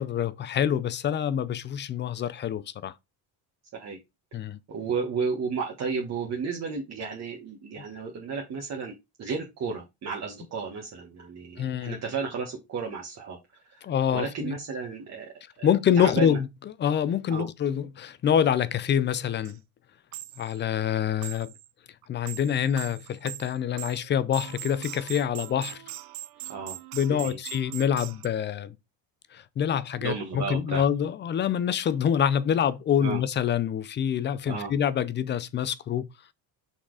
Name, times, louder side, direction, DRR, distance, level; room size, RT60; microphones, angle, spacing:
voice 1, 0.0-2.9 4.3-4.6 7.8-7.9 11.6-12.0 13.8-14.6 15.6-16.5 16.8-19.6 20.4-21.5 22.1-25.8 26.9-28.8 29.3-36.1, left 9 dB, 30° left, 0.4 m, -26 dB
voice 2, 4.7-8.9 9.2-13.4 14.1-15.7 16.0-16.4 17.3-17.5 26.5-26.8 27.1-27.4 30.0-30.8 33.0-33.2 34.5-34.7, right 5 dB, 40° right, 1.5 m, -33 dB
sound 1, 19.1-19.2 19.4-19.6 20.1-20.6 21.2-21.7 22.0-28.3, right 16 dB, 55° right, 0.5 m, -41 dB
6.0 x 4.2 x 4.7 m
cardioid pair, 155°, 42 cm